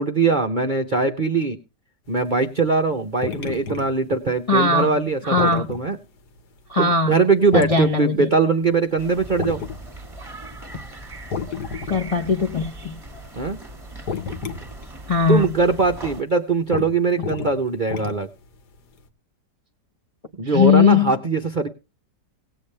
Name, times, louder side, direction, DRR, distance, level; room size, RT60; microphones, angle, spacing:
voice 1, 0.0-1.6 2.1-6.0 6.8-9.6 13.4-13.6 15.3-18.3 20.4-21.7, right 4 dB, 45° right, 5 dB, 0.6 m, -21 dB
sound 1, 2.3-5.9 6.4-6.5 7.5-7.9 8.4-8.5 8.7-9.0 9.3-10.7 11.1-12.1 12.4-13.4 13.7-14.9 15.2-15.3 15.7-15.8 16.3-16.4 16.7-16.9 17.2-18.5 19.1-19.2, left 6 dB, 65° left, 1.7 m, -30 dB
voice 2, 4.5-5.0 5.2-5.7 6.7-7.2 7.5-8.3 11.9-12.9 15.1-15.6 20.4-21.2, left 5 dB, 40° left, 3 dB, 0.5 m, -19 dB
sound 2, 9.0-16.2, right 2 dB, 15° right, 1.5 m, -39 dB
18.0 x 8.4 x 3.3 m, 0.30 s
omnidirectional pair, 1.9 m